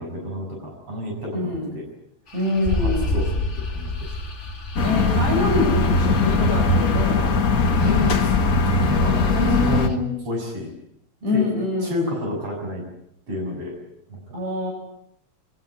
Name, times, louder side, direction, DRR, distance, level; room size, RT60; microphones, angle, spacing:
voice 1, 0.0-1.8 2.8-4.1 7.8-8.4 8.8-10.7 11.3-11.5 11.8-12.8 13.3-13.7 14.1-14.3, left 1 dB, 50° right, 1 dB, 7.8 m, -30 dB
voice 2, 1.3-1.7 2.3-3.1 4.8-7.6 9.3-10.1 11.2-12.2 14.3-14.7, left 1 dB, 70° right, -1 dB, 8.9 m, -25 dB
sound 1, 2.3-9.9, left 2 dB, 25° left, 2.0 m, -31 dB
sound 2, 4.8-9.9, left 3 dB, 45° left, 1.2 m, -20 dB
24.0 x 18.5 x 10.0 m, 0.75 s
omnidirectional pair, 3.3 m